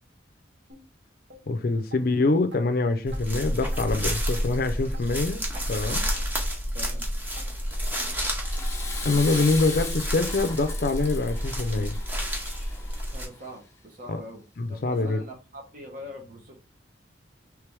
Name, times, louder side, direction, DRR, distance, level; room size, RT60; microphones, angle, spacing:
sound 1, 0.7-0.8 1.3-1.4 1.9-2.0 2.5-2.6 3.1-3.2 3.7-3.8 4.3-4.4 4.9-5.1 5.5-5.7 6.1-6.3 6.8-6.9 7.3-7.5 8.0-8.1 8.6-8.7 9.2-9.3 9.8-9.9 10.4-10.5 11.0-11.1 11.6-11.7 12.2-12.3 12.8-12.9 13.4-13.5, right 3 dB, 70° right, 1.2 m, -48 dB
voice 1, 1.5-5.4 5.7-6.0 9.0-12.0 14.1-14.2 14.6-15.2, left 3 dB, 50° left, 0.4 m, -25 dB
sound 2, 3.1-13.3, equal, 10° right, 0.9 m, -30 dB
voice 2, 6.7-7.1 13.1-14.4 14.7-16.6, left 1 dB, 45° right, 0.9 m, -43 dB
Water / Toilet flush, 8.4-13.5, left 3 dB, 15° left, 1.0 m, -38 dB
3.4 x 3.3 x 4.6 m
head